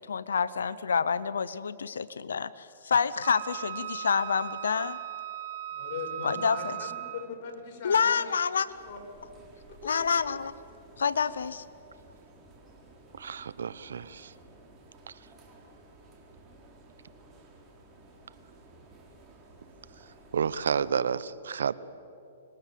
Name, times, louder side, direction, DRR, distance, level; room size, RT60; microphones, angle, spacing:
voice 1, 0.0-5.0 6.2-6.9 7.8-8.7 9.8-10.5 11.0-11.6, left 6 dB, 90° left, 0.7 m, -28 dB
Wind instrument woodwind instrument, 3.2-7.4, right 12 dB, 60° right, 1.4 m, -38 dB
voice 2, 5.7-8.2 8.9-9.0 9.7-10.0, left 6 dB, 45° left, 6.6 m, -40 dB
sound 1, 8.7-20.9, right 2 dB, 20° right, 4.2 m, -55 dB
voice 3, 13.2-14.3 20.3-21.7, right 7 dB, 80° right, 0.9 m, -30 dB
25.5 x 21.0 x 7.5 m
hypercardioid pair, 140°, 0 cm